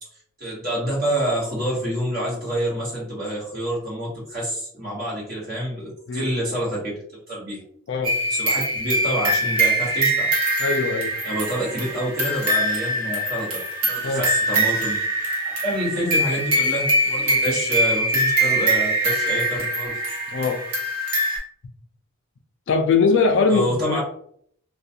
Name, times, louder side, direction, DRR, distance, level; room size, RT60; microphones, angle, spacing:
voice 1, 0.4-7.0 7.3-7.6 8.3-10.3 11.2-15.0 15.6-20.0 23.5-24.0, right 1 dB, 45° right, -6 dB, 1.3 m, -27 dB
sound 1, 8.0-21.4, right 1 dB, 80° right, 1.0 m, -23 dB
voice 2, 10.6-11.1 14.0-14.2 20.3-20.6 22.7-24.0, left 4 dB, 55° left, 5 dB, 0.3 m, -21 dB
2.4 x 2.2 x 2.7 m, 0.64 s
head